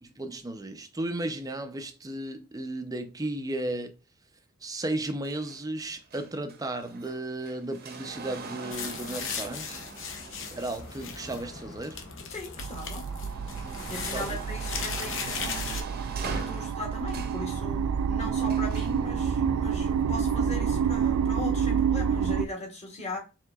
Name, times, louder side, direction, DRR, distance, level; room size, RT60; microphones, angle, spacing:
voice 1, 0.0-3.9 4.6-9.8 10.5-12.0 14.0-14.4, right 1 dB, 15° right, 0.5 m, -34 dB
sound 1, 5.2-12.4 12.9-17.5 18.5-19.0 19.9-20.0, right 3 dB, 45° right, 0.8 m, -43 dB
sound 2, 8.7-15.8, left 6 dB, 60° left, 0.8 m, -38 dB
voice 2, 12.3-13.1 13.9-15.9 16.3-23.2, left 1 dB, 30° left, 1.5 m, -38 dB
sound 3, 12.6-22.5, right 7 dB, 75° right, 0.3 m, -28 dB
4.6 x 3.6 x 2.3 m
head